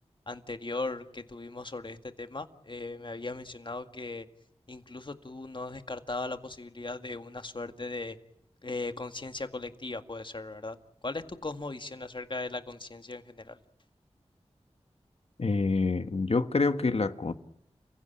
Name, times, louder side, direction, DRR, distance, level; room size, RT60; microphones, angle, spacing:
voice 1, 0.3-4.3 4.7-8.2 8.6-10.8 11.0-13.6, left 3 dB, 45° left, 2.0 m, -38 dB
voice 2, 15.4-17.3, left 3 dB, 65° left, 1.4 m, -27 dB
29.5 x 16.0 x 8.7 m
wide cardioid pair, 50°, 11 cm